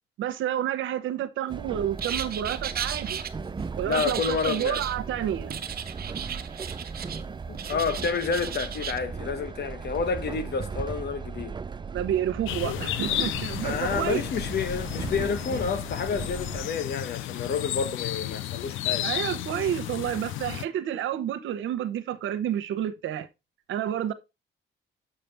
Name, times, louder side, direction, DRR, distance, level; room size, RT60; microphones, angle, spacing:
voice 1, 0.2-3.2 3.8-5.6 11.9-14.2 19.0-23.3 23.7-24.1, right 10 dB, 80° right, 0.9 m, -29 dB
Train, 1.5-16.7, right 5 dB, 25° right, 0.5 m, -37 dB
sound 1, 2.0-3.3 3.9-5.0 5.5-7.2 7.5-9.0, right 8 dB, 50° right, 1.0 m, -35 dB
voice 2, 3.9-4.8 7.5-11.5 13.6-19.1, left 5 dB, 55° left, 1.2 m, -29 dB
sound 2, 12.5-20.6, left 13 dB, 85° left, 0.5 m, -33 dB
7.4 x 5.8 x 3.4 m
cardioid pair, 90°, 20 cm